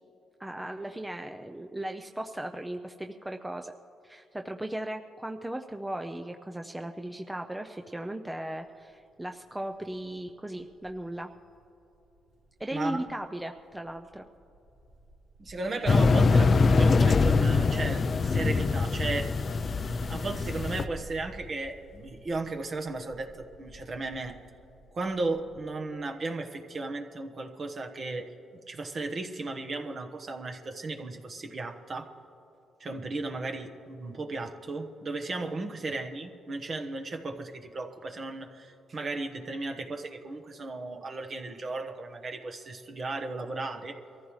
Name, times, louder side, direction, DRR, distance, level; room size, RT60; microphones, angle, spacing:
voice 1, 0.4-3.7 4.0-11.3 12.6-14.3, right 1 dB, 10° right, 5 dB, 0.5 m, -37 dB
Wind, 8.7-9.0 9.4-9.5 9.7-13.3 13.6-25.7 26.0-26.1, right 1 dB, 70° right, 3.2 m, -50 dB
voice 2, 12.7-13.1 15.4-19.3 20.1-24.4 24.9-28.3 28.7-32.1 32.8-44.0, right 3 dB, 40° right, 5 dB, 1.2 m, -35 dB
sound 1, 15.9-20.8, left 4 dB, 40° left, 0.5 m, -23 dB
23.0 x 14.5 x 3.2 m, 2.9 s
cardioid pair, 90°, 0 cm